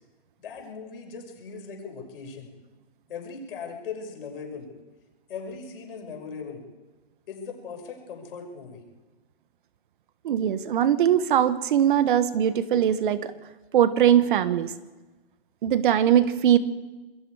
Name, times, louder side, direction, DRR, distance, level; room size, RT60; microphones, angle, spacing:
voice 1, 0.4-2.5 3.1-4.7 5.3-6.6 7.3-8.8, left 5 dB, 55° left, 2 dB, 6.0 m, -39 dB
voice 2, 10.2-13.3 13.7-14.7 15.6-16.6, right 10 dB, 50° right, 13 dB, 1.3 m, -21 dB
26.5 x 21.5 x 4.9 m, 1.2 s
hypercardioid pair, 140°, 33 cm